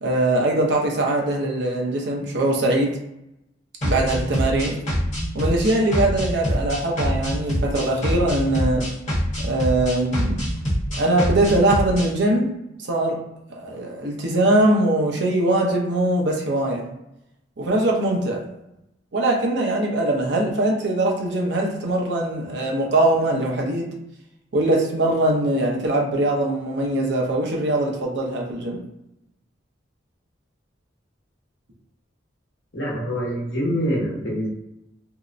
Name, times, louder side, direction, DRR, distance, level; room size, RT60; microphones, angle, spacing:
voice 1, 0.0-3.0 3.8-4.8 5.3-8.9 9.4-10.4 11.0-12.5 12.9-13.2 13.5-16.9 17.6-18.4 19.1-23.9 24.5-28.8, right 1 dB, 60° right, -1 dB, 0.6 m, -21 dB
sound 1, 3.8-12.1, equal, 40° left, 0.9 m, -25 dB
voice 2, 32.7-34.5, equal, 65° left, -5 dB, 1.0 m, -25 dB
2.7 x 2.0 x 2.4 m, 0.86 s
head